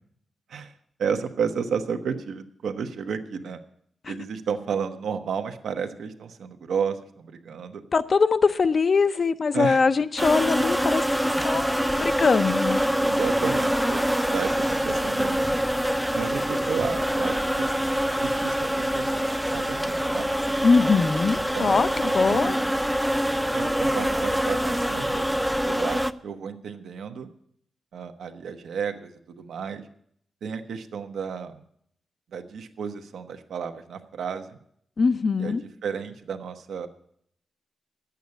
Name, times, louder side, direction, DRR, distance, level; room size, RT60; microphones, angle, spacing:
voice 1, 1.0-3.6 4.1-7.8 9.5-9.8 11.5-11.6 13.0-15.5 16.1-17.7 18.2-20.3 21.3-22.6 23.5-25.2 25.6-27.3 27.9-29.9 30.4-31.6 32.3-34.6 35.4-35.6 35.8-36.9, right 6 dB, 85° right, 6 dB, 1.1 m, -32 dB
voice 2, 7.9-11.1 11.4-12.8 20.6-22.6 35.0-35.6, left 4 dB, 40° left, 13 dB, 0.6 m, -22 dB
sound 1, 10.2-26.1, equal, 5° right, 0.4 m, -25 dB
11.0 x 8.3 x 8.3 m, 0.69 s
wide cardioid pair, 130°, 0 cm